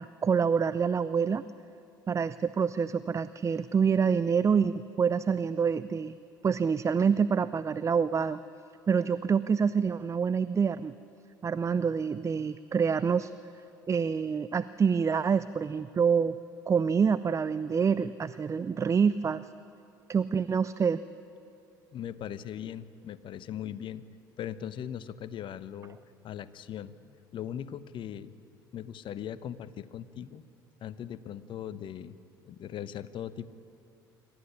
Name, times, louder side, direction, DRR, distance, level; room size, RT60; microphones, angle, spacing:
voice 1, 0.0-1.4 2.1-6.2 6.4-8.4 8.9-10.9 11.4-13.3 13.9-16.4 16.7-19.4 20.1-21.0, right 6 dB, 25° right, 15 dB, 0.5 m, -26 dB
voice 2, 21.9-24.0 24.4-26.0 26.2-28.4 28.7-30.4 30.8-32.2 32.4-33.5, left 10 dB, 45° left, 15 dB, 0.9 m, -39 dB
26.0 x 14.0 x 9.9 m, 2.7 s
hypercardioid pair, 60°, 11 cm